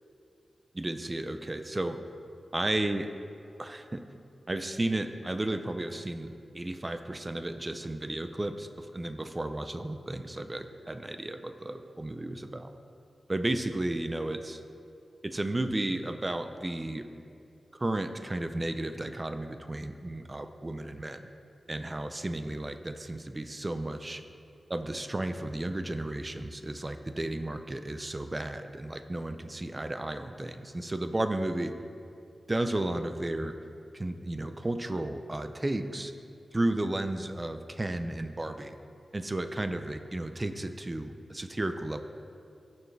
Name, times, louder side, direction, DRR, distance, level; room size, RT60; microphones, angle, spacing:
voice 1, 0.7-2.0 2.5-3.1 3.6-4.0 4.5-12.7 13.3-14.6 15.2-17.1 17.7-21.2 21.7-24.2 24.7-31.7 32.5-33.6 33.9-36.1 36.5-38.8 39.1-42.0, right 1 dB, 25° right, 8 dB, 0.6 m, -33 dB
20.0 x 7.0 x 3.3 m, 2.5 s
wide cardioid pair, 120°, 0 cm